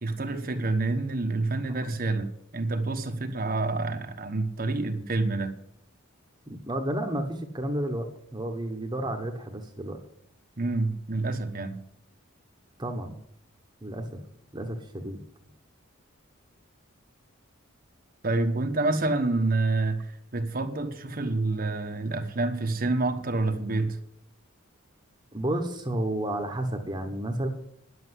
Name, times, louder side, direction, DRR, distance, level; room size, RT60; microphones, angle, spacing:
voice 1, 0.0-5.6 10.6-11.8 18.2-24.0, right 2 dB, 40° right, 1.1 m, -28 dB
voice 2, 6.5-10.0 12.8-13.2 13.8-14.2 14.5-15.2 25.3-27.5, right 1 dB, 20° right, 1.2 m, -31 dB
10.5 x 7.9 x 9.7 m
head